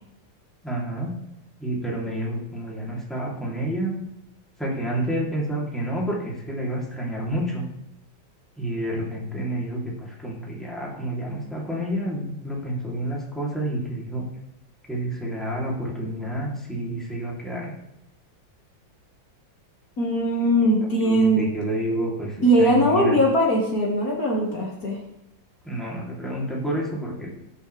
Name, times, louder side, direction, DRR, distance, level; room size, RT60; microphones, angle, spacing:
voice 1, 0.6-1.1 1.6-3.9 4.6-7.6 8.6-14.3 14.9-17.7 20.6-20.7 21.0-23.2 25.6-27.3, right 1 dB, ahead, -5 dB, 3.1 m, -29 dB
voice 2, 20.0-21.5 22.4-25.0, right 1 dB, 55° left, -2 dB, 2.3 m, -20 dB
19.5 x 6.8 x 3.4 m, 0.87 s
omnidirectional pair, 2.0 m